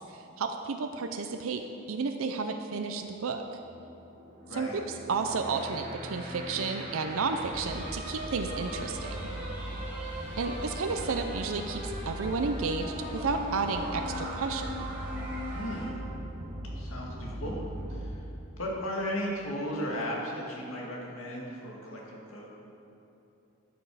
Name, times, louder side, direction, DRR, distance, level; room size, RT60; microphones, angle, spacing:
voice 1, 0.4-1.6 1.9-3.5 4.5-4.7 5.1-9.2 10.4-14.7, right 4 dB, 85° right, 6 dB, 0.5 m, -32 dB
sound 1, 2.9-18.1, equal, 40° right, 1.5 m, -39 dB
voice 2, 4.5-4.8 15.5-16.0 16.7-17.6 17.9-18.2 18.6-22.5, equal, 85° left, -3 dB, 2.2 m, -35 dB
sound 2, 7.3-15.9, right 1 dB, 10° right, 2.3 m, -45 dB
13.0 x 6.9 x 4.8 m, 2.9 s
head